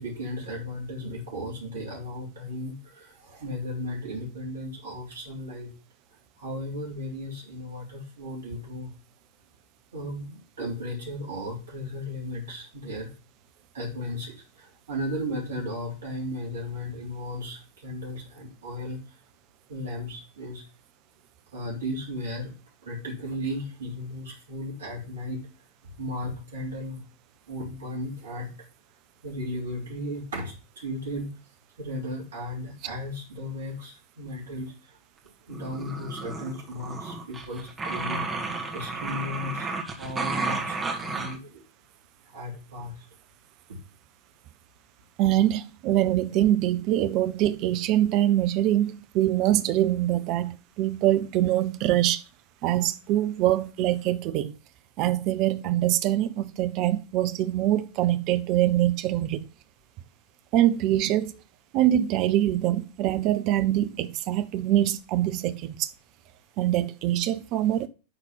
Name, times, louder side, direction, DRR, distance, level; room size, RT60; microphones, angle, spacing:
voice 1, 0.0-5.7 6.4-8.9 9.9-13.1 13.7-19.2 19.7-20.6 21.5-22.5 22.8-25.5 26.0-27.0 27.5-28.5 29.2-31.3 31.8-35.0 35.5-38.3 38.7-41.6 42.2-43.0 43.7-43.8, left 1 dB, 65° right, 3.4 m, -35 dB
sound 1, 35.5-41.4, right 3 dB, 15° right, 2.0 m, -32 dB
voice 2, 45.2-52.2 52.6-54.5 55.0-59.5 60.5-61.3 61.7-65.9 66.6-67.9, right 13 dB, 40° right, 0.8 m, -24 dB
11.0 x 4.2 x 5.6 m
figure-of-eight pair, 90°, 0 cm